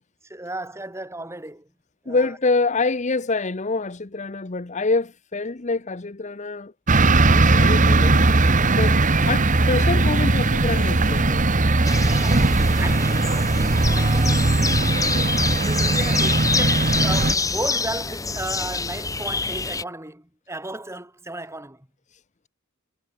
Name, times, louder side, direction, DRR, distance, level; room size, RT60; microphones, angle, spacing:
voice 1, 0.3-1.7 2.0-2.3 12.1-12.5 12.8-14.5 14.8-15.0 15.6-21.9, right 2 dB, 15° right, 4.3 m, -34 dB
voice 2, 2.1-6.7 7.3-8.2 8.7-11.4, left 3 dB, 35° left, 0.9 m, -26 dB
sound 1, 6.9-17.3, right 2 dB, 40° right, 1.2 m, -19 dB
sound 2, 11.8-19.8, left 4 dB, 15° left, 1.4 m, -26 dB
head